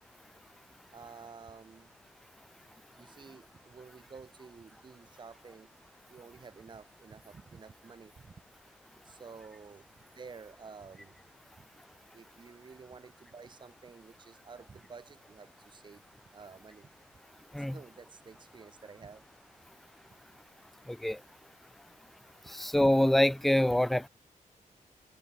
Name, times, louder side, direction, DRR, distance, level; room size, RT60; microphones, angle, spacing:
voice 1, 0.9-1.9 3.0-5.7 6.1-8.3 9.0-9.9 10.1-11.2 11.6-11.7 12.1-16.0 16.3-16.9 17.6-19.3, right 5 dB, 35° right, 6.2 m, -51 dB
voice 2, 20.9-21.2 22.5-24.1, left 1 dB, ahead, 0.3 m, -25 dB
wide cardioid pair, 175°, 14 cm